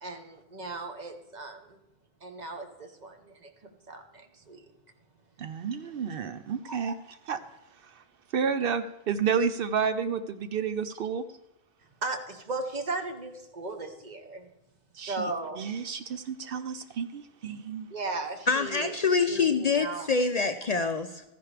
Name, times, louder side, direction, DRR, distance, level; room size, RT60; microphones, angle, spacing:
voice 1, 0.0-1.8 2.2-3.5 3.9-4.6 6.7-6.9 12.0-14.5 14.9-15.6 17.9-18.9 19.3-20.1, right 3 dB, 45° right, 5 dB, 1.1 m, -36 dB
voice 2, 5.4-6.9 7.3-7.4 7.8-8.0 8.3-11.2 15.0-15.3 15.6-17.9, right 6 dB, 65° right, 11 dB, 0.7 m, -30 dB
voice 3, 18.5-21.2, left 4 dB, 50° left, 8 dB, 0.5 m, -26 dB
14.0 x 10.5 x 3.3 m, 0.95 s
omnidirectional pair, 1.1 m